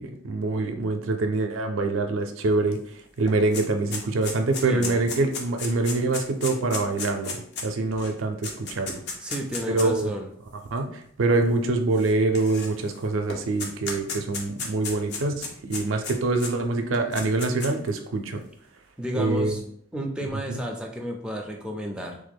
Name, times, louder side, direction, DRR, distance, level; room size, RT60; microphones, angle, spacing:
voice 1, 0.0-2.8 3.2-9.0 9.6-10.1 10.7-18.4 19.1-19.6 20.5-20.6, right 3 dB, 80° right, 5 dB, 0.4 m, -25 dB
sound 1, 2.7-2.8 3.1-10.0 10.8-10.9 11.9-13.0 13.3-16.5 16.9-17.9, left 4 dB, 60° left, 0.6 m, -34 dB
voice 2, 4.6-5.0 9.2-10.3 19.0-19.6 19.9-22.2, equal, 5° right, 0 dB, 0.4 m, -32 dB
3.2 x 2.1 x 3.4 m, 0.66 s
head